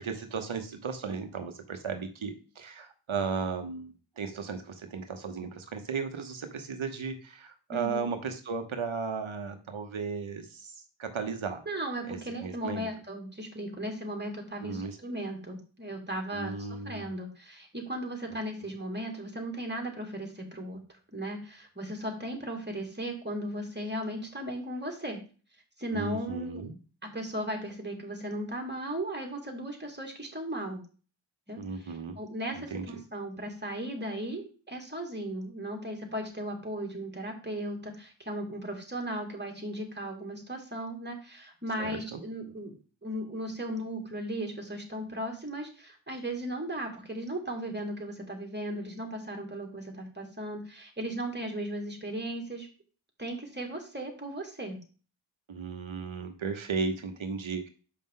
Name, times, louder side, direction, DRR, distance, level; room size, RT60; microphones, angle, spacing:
voice 1, 0.0-11.6 12.1-12.9 14.6-15.0 16.3-17.1 25.9-26.8 31.6-32.2 32.6-32.9 41.8-42.2 55.5-57.7, right 5 dB, 90° right, 6 dB, 0.9 m, -35 dB
voice 2, 7.7-8.1 11.7-25.2 25.8-26.7 27.0-30.8 31.5-42.7 43.0-52.7 53.2-54.8, right 1 dB, 20° right, 2 dB, 2.1 m, -36 dB
6.7 x 5.3 x 3.7 m, 0.37 s
wide cardioid pair, 45°, 46 cm